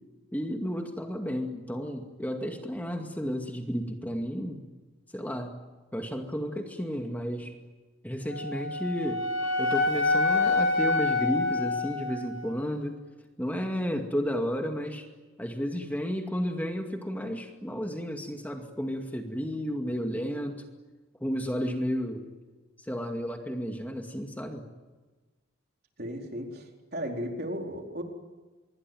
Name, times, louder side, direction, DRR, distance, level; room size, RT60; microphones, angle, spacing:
voice 1, 0.3-4.6 5.1-5.6 5.9-7.5 8.0-9.2 9.6-13.0 13.4-15.1 15.4-20.6 21.2-22.2 22.8-24.7, equal, 10° left, 3 dB, 2.2 m, -32 dB
Wind instrument woodwind instrument, 8.3-12.5, left 3 dB, 85° left, 6.4 m, -27 dB
voice 2, 26.0-28.0, equal, 50° right, 2 dB, 4.3 m, -35 dB
26.5 x 23.0 x 9.3 m, 1.3 s
head